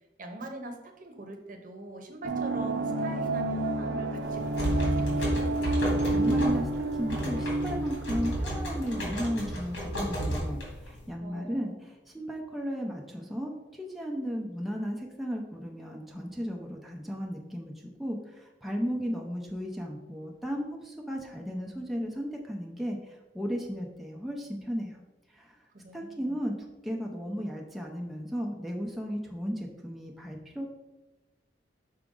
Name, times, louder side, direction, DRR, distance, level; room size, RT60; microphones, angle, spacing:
voice 1, 0.2-5.5 11.2-11.7 25.8-26.4, right 1 dB, 45° right, 4 dB, 0.9 m, -42 dB
sound 1, 2.2-9.6, right 2 dB, 80° right, 0.6 m, -30 dB
sound 2, 4.2-11.1, equal, 85° left, 2.2 m, -32 dB
voice 2, 6.1-25.0 25.3-25.6 25.9-26.5 26.8-30.7, equal, ahead, -1 dB, 0.6 m, -35 dB
5.9 x 5.0 x 3.7 m, 1.1 s
head